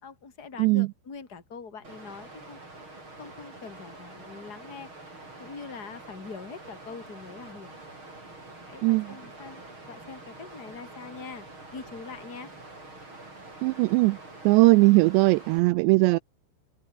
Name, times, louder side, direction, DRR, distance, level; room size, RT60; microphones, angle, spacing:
voice 1, 0.0-2.6 3.2-7.8 8.7-11.5 11.7-12.5, left 5 dB, 20° left, 4.1 m, -43 dB
Water, 1.8-15.6, right 2 dB, 25° right, 8.6 m, -46 dB
voice 2, 8.8-9.2 13.6-14.2 14.4-16.2, right 23 dB, 85° right, 2.6 m, -20 dB
omnidirectional pair, 5.3 m